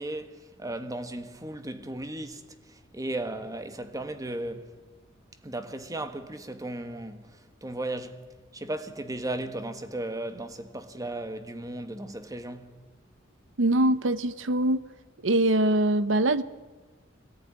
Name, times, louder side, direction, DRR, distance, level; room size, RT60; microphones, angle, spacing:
voice 1, 0.0-4.7 5.4-8.2 8.5-12.8, right 1 dB, 20° right, 1.5 m, -36 dB
voice 2, 13.6-14.8 15.2-16.4, right 1 dB, 70° right, 0.9 m, -23 dB
23.5 x 18.0 x 9.7 m
head